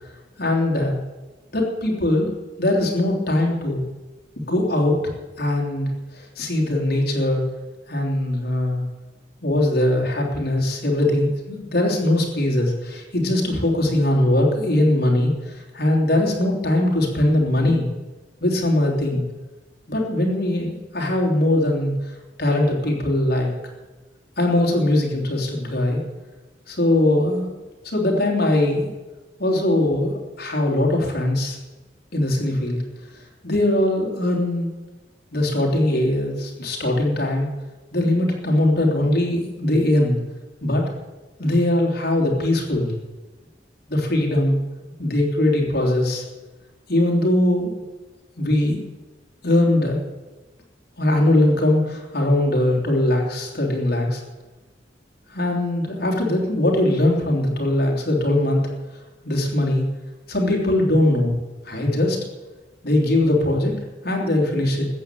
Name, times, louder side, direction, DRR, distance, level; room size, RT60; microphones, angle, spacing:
voice 1, 0.4-1.0 1.5-2.3 2.6-3.8 4.5-5.0 5.4-7.4 7.9-8.8 9.4-17.9 18.4-19.2 19.9-21.9 22.4-23.5 24.4-26.0 26.7-27.5 27.8-28.9 29.4-31.6 32.1-32.8 33.4-34.8 35.3-37.5 37.9-40.2 40.6-40.8 41.4-42.9 43.9-44.6 45.0-46.2 46.9-47.7 48.4-48.8 49.4-50.0 51.0-54.2 55.3-58.6 59.2-59.8 60.3-61.3 61.7-62.2 62.8-63.7 64.0-64.9, left 1 dB, 55° left, 0 dB, 3.3 m, -21 dB
14.0 x 7.7 x 9.2 m, 1.2 s
head